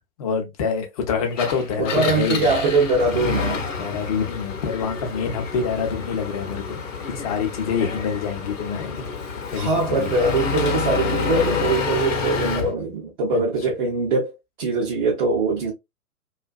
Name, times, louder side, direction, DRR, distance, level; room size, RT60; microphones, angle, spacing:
voice 1, 0.2-2.6 3.8-9.0 9.5-10.1 13.3-13.7, left 6 dB, 25° left, 0.5 m, -26 dB
Engine, 1.3-12.7, left 5 dB, 55° left, 0.9 m, -28 dB
voice 2, 1.8-3.6 9.5-15.7, right 3 dB, 35° right, 0.6 m, -22 dB
2.4 x 2.4 x 2.2 m
figure-of-eight pair, 115°, 45 cm